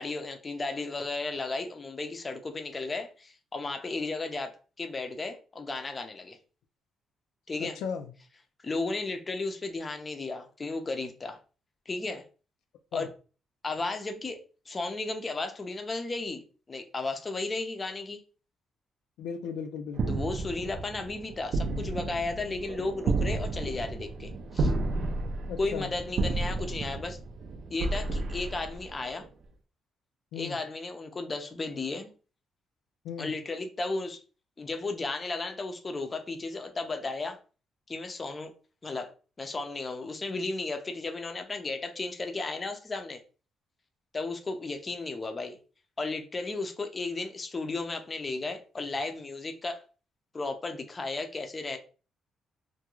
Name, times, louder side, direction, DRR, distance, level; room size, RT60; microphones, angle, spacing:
voice 1, 0.0-4.5 4.8-6.4 7.5-7.8 8.6-11.4 11.9-12.2 12.9-13.1 13.6-14.4 14.7-16.4 16.7-18.2 20.1-24.7 25.6-27.2 27.7-29.3 30.3-32.1 33.2-34.2 34.6-37.4 37.9-38.5 38.8-39.1 39.4-43.2 44.1-45.6 46.0-49.8 50.3-51.8, left 3 dB, 30° left, 0.5 m, -34 dB
voice 2, 7.6-8.1 12.9-13.1 19.2-20.2 25.5-25.9 30.3-30.6 33.0-33.3, left 7 dB, 90° left, 0.3 m, -36 dB
sound 1, 19.9-29.2, right 3 dB, 60° right, 0.4 m, -32 dB
2.4 x 2.2 x 2.9 m
cardioid pair, 90°, 0 cm